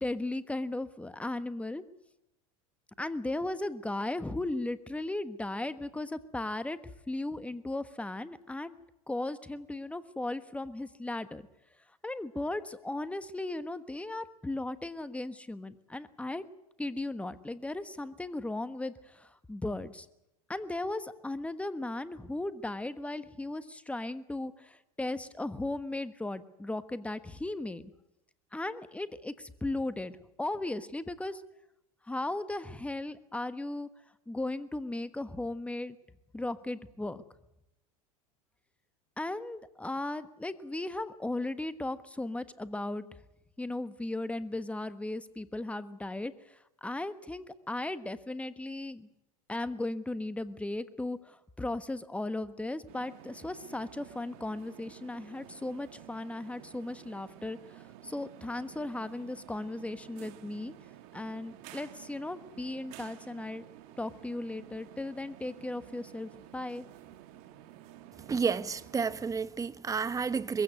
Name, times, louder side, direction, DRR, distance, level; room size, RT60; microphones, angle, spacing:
voice 1, 0.0-1.8 3.0-6.8 7.1-8.8 9.1-11.4 12.0-16.4 16.8-20.1 20.5-27.9 28.5-31.4 32.0-33.9 34.3-36.0 36.3-37.2 39.2-43.1 43.6-49.1 49.5-60.7 61.1-63.6 64.0-66.8, left 2 dB, 5° left, 1.3 m, -36 dB
sound 1, 52.9-69.2, right 12 dB, 60° right, 2.2 m, -52 dB
voice 2, 68.3-70.6, right 5 dB, 20° right, 1.0 m, -31 dB
22.0 x 16.0 x 9.6 m
hypercardioid pair, 105°, 19 cm